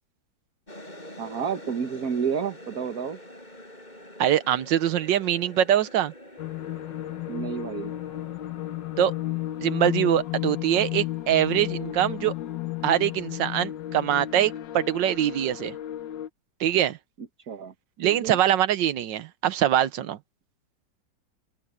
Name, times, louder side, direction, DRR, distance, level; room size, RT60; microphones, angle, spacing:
sound 1, 0.7-12.2, left 1 dB, 25° left, 6.3 m, -47 dB
voice 1, 1.2-3.2 7.3-7.9 17.5-17.7 18.0-18.4, right 7 dB, 55° right, 1.9 m, -30 dB
voice 2, 4.2-6.1 9.0-9.1 9.6-12.3 12.8-15.7 16.6-17.0 18.0-20.2, right 11 dB, 80° right, 1.5 m, -23 dB
sound 2, 6.4-16.3, left 15 dB, 80° left, 1.5 m, -33 dB
open air
omnidirectional pair, 2.0 m